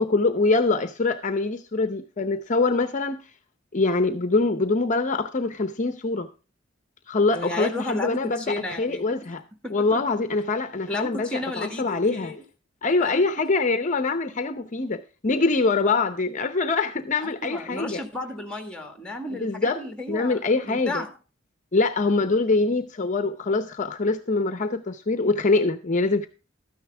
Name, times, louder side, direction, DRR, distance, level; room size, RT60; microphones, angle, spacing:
voice 1, 0.0-3.3 3.7-6.3 7.1-9.4 9.7-12.3 12.8-18.0 19.3-19.8 20.1-21.0 21.7-26.3, left 3 dB, 40° left, 0.7 m, -24 dB
voice 2, 7.3-9.0 9.6-10.0 10.9-12.4 13.0-13.2 17.2-20.4 20.6-21.1, left 2 dB, 5° left, 1.8 m, -33 dB
13.0 x 9.6 x 3.3 m
head